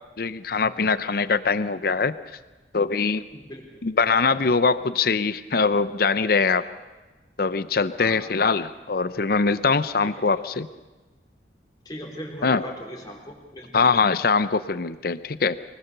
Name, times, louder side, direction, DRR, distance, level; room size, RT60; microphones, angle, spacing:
voice 1, 0.2-2.1 2.7-3.2 3.8-6.6 7.4-10.7 12.4-12.6 13.7-15.6, left 4 dB, 55° left, 14 dB, 0.7 m, -22 dB
voice 2, 3.3-3.8 8.0-8.3 10.0-10.1 11.9-13.9, equal, 25° left, -1 dB, 3.9 m, -38 dB
24.5 x 19.5 x 6.8 m, 1.2 s
head